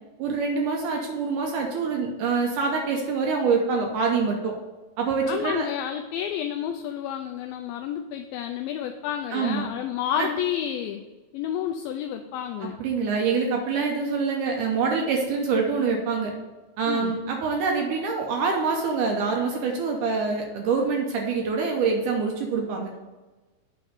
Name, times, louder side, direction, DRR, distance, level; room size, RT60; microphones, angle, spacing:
voice 1, 0.2-4.5 5.0-5.7 9.3-9.7 10.2-10.3 12.8-16.3 16.8-22.9, right 5 dB, 75° right, 1 dB, 2.0 m, -25 dB
voice 2, 5.3-11.0 11.3-12.8 16.9-17.1, left 10 dB, 85° left, 5 dB, 2.1 m, -30 dB
8.6 x 3.5 x 6.4 m, 1.2 s
omnidirectional pair, 4.5 m